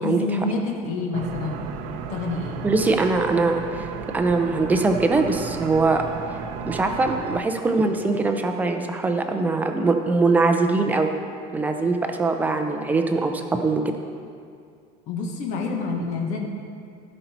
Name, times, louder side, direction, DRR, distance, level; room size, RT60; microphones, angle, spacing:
voice 1, 0.0-1.7 2.1-2.6 15.1-16.5, left 3 dB, 55° left, 1 dB, 1.5 m, -28 dB
sound 1, 1.1-7.4, right 6 dB, 65° right, 0.7 m, -34 dB
voice 2, 2.6-3.9 4.1-6.0 6.7-11.1 11.5-13.8, right 3 dB, 10° right, 4 dB, 0.6 m, -22 dB
16.0 x 5.5 x 4.5 m, 2.3 s
cardioid pair, 160°, 15 cm